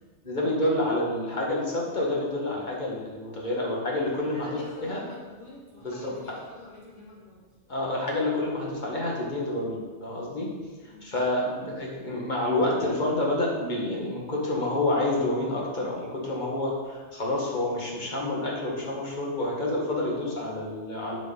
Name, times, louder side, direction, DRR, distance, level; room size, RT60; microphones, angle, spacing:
voice 1, 0.2-5.0 5.8-6.1 7.7-10.5 11.0-21.2, left 1 dB, 35° left, -3 dB, 1.8 m, -28 dB
voice 2, 4.0-7.4 10.8-11.1, left 3 dB, 65° left, -7 dB, 3.0 m, -47 dB
7.9 x 6.7 x 3.9 m, 1.3 s
omnidirectional pair, 1.3 m